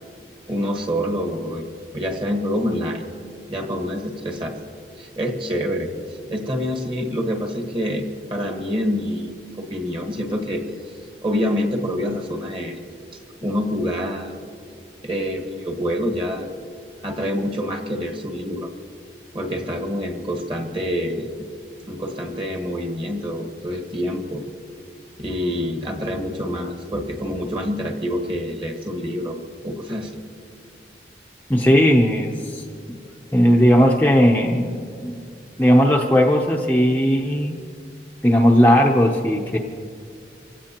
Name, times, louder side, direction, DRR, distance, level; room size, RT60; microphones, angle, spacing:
voice 1, 0.5-1.6 1.9-3.1 3.5-4.6 5.0-5.9 6.3-9.3 9.6-10.9 11.2-12.8 13.4-14.3 15.0-16.5 17.0-18.7 19.3-21.3 21.9-24.4 25.2-30.2, equal, 30° right, 2 dB, 1.5 m, -26 dB
voice 2, 31.5-32.6 33.3-35.2 35.6-37.6 38.2-39.6, equal, 10° left, 0 dB, 0.6 m, -17 dB
25.5 x 16.5 x 3.0 m, 2.3 s
head